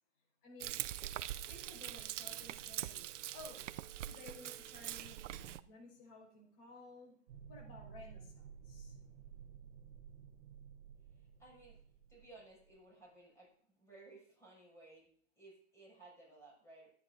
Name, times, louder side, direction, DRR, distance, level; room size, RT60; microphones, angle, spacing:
voice 1, 0.4-0.7 1.5-3.1 3.3-3.7 4.0-7.1 7.5-9.0, left 3 dB, 50° left, 0 dB, 5.6 m, -55 dB
Frying (food), 0.6-5.6, right 13 dB, 80° right, 0.6 m, -43 dB
sound 1, 7.3-12.7, right 7 dB, 45° right, 1.1 m, -54 dB
voice 2, 11.1-11.8 12.1-15.1 15.4-16.9, right 2 dB, 10° left, -3 dB, 6.3 m, -59 dB
22.0 x 9.6 x 2.6 m, 0.64 s
hypercardioid pair, 135°, 36 cm